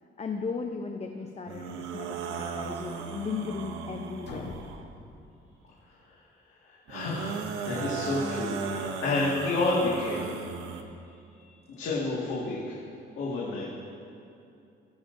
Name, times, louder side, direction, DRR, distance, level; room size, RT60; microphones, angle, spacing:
voice 1, 0.2-4.5, left 5 dB, 35° left, 4 dB, 0.6 m, -36 dB
sound 1, 1.5-4.9 6.9-10.8, right 5 dB, 90° right, 0.8 m, -36 dB
sound 2, 4.2-6.1, left 3 dB, 65° left, 1.4 m, -44 dB
voice 2, 6.6-10.3 11.7-12.8 13.2-13.6, left 2 dB, 80° left, -6 dB, 1.8 m, -30 dB
20.0 x 7.2 x 2.6 m, 2.6 s
cardioid pair, 90°, 20 cm